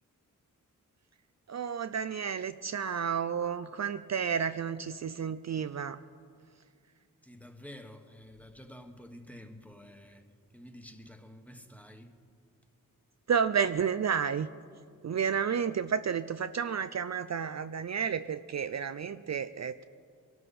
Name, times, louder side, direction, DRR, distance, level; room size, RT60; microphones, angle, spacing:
voice 1, 1.5-6.0 13.3-14.5 15.0-19.8, right 7 dB, 50° right, 11 dB, 0.5 m, -31 dB
voice 2, 7.2-10.3 10.5-12.1, left 1 dB, 5° left, 6 dB, 1.3 m, -49 dB
22.5 x 12.5 x 4.2 m, 2.2 s
cardioid pair, 60°, 34 cm